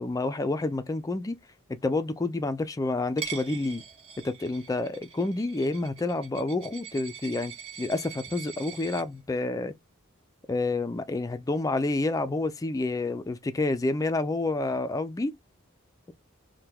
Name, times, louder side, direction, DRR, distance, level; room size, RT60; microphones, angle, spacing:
voice 1, 0.0-1.4 1.8-3.8 4.2-7.5 7.8-9.7 10.5-15.4, left 2 dB, 15° left, 0.3 m, -29 dB
Coin (dropping), 3.2-9.0, right 8 dB, 30° right, 0.7 m, -43 dB
2.9 x 2.1 x 3.4 m
head